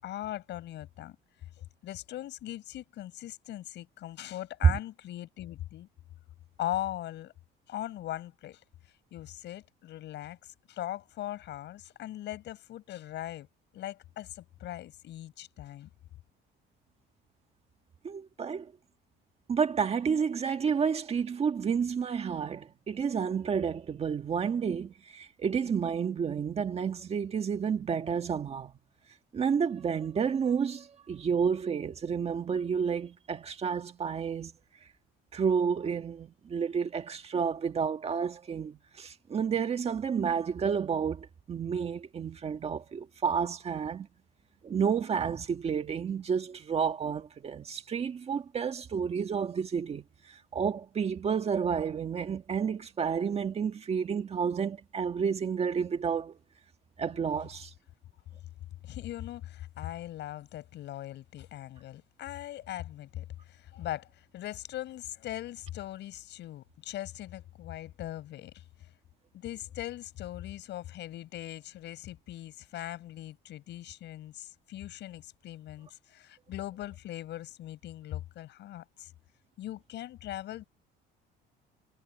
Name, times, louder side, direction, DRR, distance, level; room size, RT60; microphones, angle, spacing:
voice 1, 0.0-1.2 1.8-5.9 6.6-7.3 7.7-8.6 9.1-13.5 13.7-15.9 58.8-68.6 69.3-79.1 79.6-80.6, left 13 dB, 60° left, 6.5 m, -40 dB
voice 2, 18.0-18.7 19.5-28.7 29.3-34.5 35.3-44.1 44.6-56.4 57.0-57.7, right 6 dB, 30° right, 1.7 m, -30 dB
cardioid pair, 150°, 20 cm